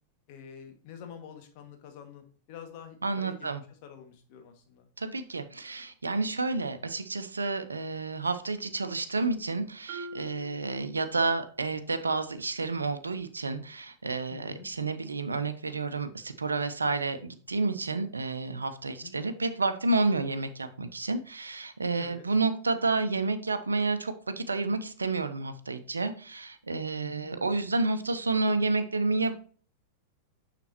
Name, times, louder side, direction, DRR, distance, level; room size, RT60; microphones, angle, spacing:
voice 1, 0.3-3.5 3.8-4.9 14.3-14.7 19.0-19.1 22.0-22.2 27.0-27.4, left 8 dB, 50° left, 4 dB, 1.8 m, -47 dB
voice 2, 3.0-3.6 5.0-29.3, right 3 dB, 85° right, 9 dB, 0.6 m, -30 dB
Marimba xylophone, 9.9-11.6, right 2 dB, 50° right, 3.2 m, -44 dB
6.9 x 5.9 x 2.9 m, 0.42 s
hypercardioid pair, 95°, 0 cm